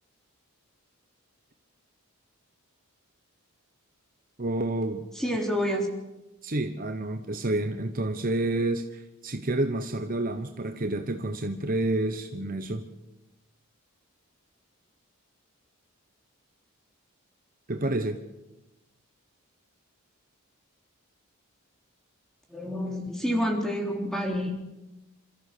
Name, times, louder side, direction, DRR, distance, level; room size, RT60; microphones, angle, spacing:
voice 1, 4.4-5.0 6.4-12.8 17.7-18.2, right 2 dB, 40° right, 6 dB, 1.1 m, -29 dB
voice 2, 5.2-5.9 22.5-24.5, equal, ahead, 1 dB, 3.5 m, -28 dB
27.5 x 14.0 x 6.8 m, 0.99 s
head